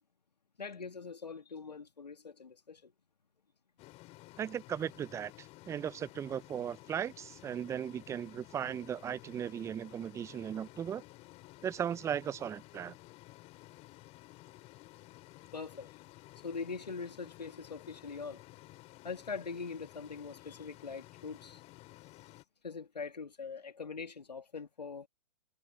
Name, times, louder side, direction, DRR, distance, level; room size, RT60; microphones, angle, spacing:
voice 1, 0.6-2.9 15.5-15.9 16.4-18.4 19.0-21.6 22.6-25.1, left 5 dB, 80° left, 2.4 m, -42 dB
sound 1, 3.8-22.4, left 19 dB, 30° left, 2.8 m, -54 dB
voice 2, 4.4-5.3 5.7-11.0 11.6-12.9, right 9 dB, 15° right, 0.6 m, -37 dB
figure-of-eight pair, 115°, 21 cm